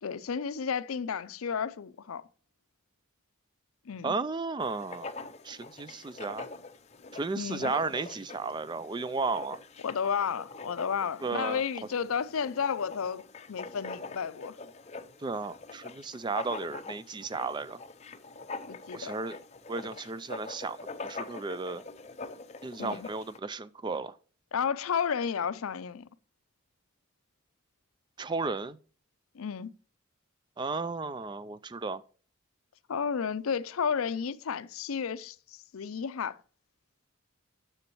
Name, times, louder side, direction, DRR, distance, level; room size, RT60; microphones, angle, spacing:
voice 1, 0.0-2.2 3.9-4.1 7.4-7.7 9.8-14.6 18.7-19.2 22.8-23.1 24.5-26.0 29.3-29.7 32.9-36.4, left 6 dB, 75° left, 0.5 m, -32 dB
voice 2, 4.0-5.1 5.4-6.5 7.1-9.6 11.2-11.6 15.2-17.8 18.9-19.4 19.7-21.8 22.6-24.2 28.2-28.8 30.6-32.0, right 3 dB, 20° right, 0.3 m, -34 dB
Writing, 4.6-23.4, left 3 dB, 30° left, 0.5 m, -44 dB
9.7 x 7.1 x 3.0 m
head